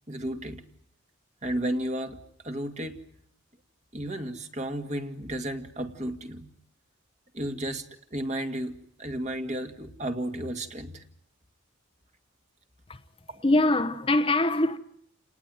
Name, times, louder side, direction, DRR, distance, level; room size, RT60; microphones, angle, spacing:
voice 1, 0.1-0.6 1.4-3.0 3.9-6.5 7.3-11.0 13.3-13.4, right 1 dB, 35° right, 2.2 m, -33 dB
voice 2, 13.4-14.8, left 2 dB, 25° left, 1.1 m, -23 dB
29.5 x 19.0 x 9.2 m
head